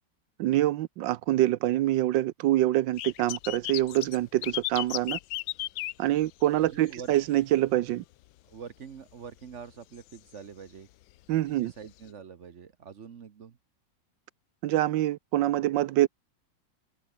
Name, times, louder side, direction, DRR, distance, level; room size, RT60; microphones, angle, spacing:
voice 1, 0.4-5.2 6.0-8.0 11.3-11.7 14.6-16.1, right 14 dB, 75° right, 1.3 m, -25 dB
sound 1, 3.0-7.2 7.4-7.8 8.2-8.3 9.6-9.7 10.1-10.2 11.3-11.4 12.1-12.2, left 16 dB, 90° left, 1.4 m, -35 dB
voice 2, 6.6-7.1 8.5-10.9 11.5-13.6, right 6 dB, 45° right, 1.1 m, -45 dB
omnidirectional pair, 2.1 m